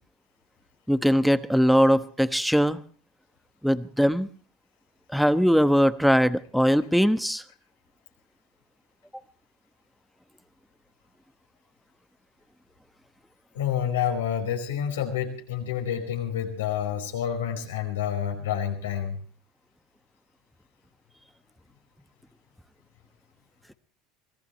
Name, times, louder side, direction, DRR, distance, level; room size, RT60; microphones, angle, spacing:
voice 1, 0.9-2.8 3.6-4.3 5.1-7.4, equal, ahead, 13 dB, 1.1 m, -21 dB
voice 2, 13.5-19.2, left 9 dB, 90° left, 3 dB, 4.9 m, -28 dB
25.0 x 17.5 x 3.1 m, 0.41 s
hypercardioid pair, 85°, 0 cm